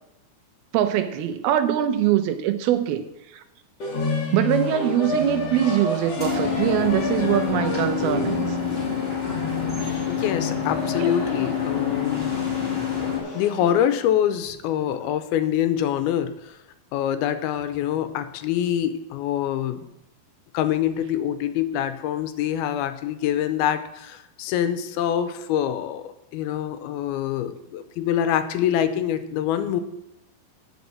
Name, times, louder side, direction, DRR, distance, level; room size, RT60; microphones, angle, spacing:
voice 1, 0.7-3.0 3.3-3.4 4.3-8.5 11.0-11.1, right 11 dB, 85° right, 9 dB, 2.7 m, -22 dB
sound 1, 3.8-14.0, left 2 dB, 50° left, 2.4 m, -31 dB
sound 2, 6.2-13.2, left 8 dB, 20° left, 2.1 m, -27 dB
voice 2, 10.1-12.3 13.3-16.6 16.9-19.9 20.5-29.8, left 10 dB, 85° left, 10 dB, 2.6 m, -25 dB
9.4 x 6.1 x 7.3 m, 0.88 s
omnidirectional pair, 4.4 m